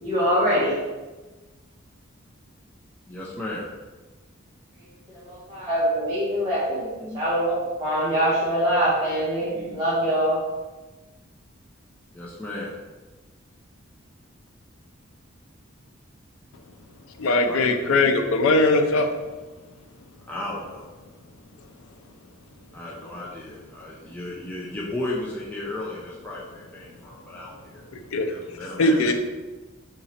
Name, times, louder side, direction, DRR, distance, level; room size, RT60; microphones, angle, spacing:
voice 1, 0.0-0.8 5.1-7.5 7.8-10.4, equal, 20° right, -11 dB, 1.2 m, -24 dB
voice 2, 3.1-3.7 12.1-12.7 17.2-17.6 20.3-20.8 22.7-27.8 28.3-29.1, left 1 dB, 10° left, -6 dB, 0.5 m, -34 dB
voice 3, 17.2-19.1 28.1-28.3 28.8-29.1, left 2 dB, 80° left, 5 dB, 0.4 m, -20 dB
3.9 x 3.0 x 4.2 m, 1.2 s
head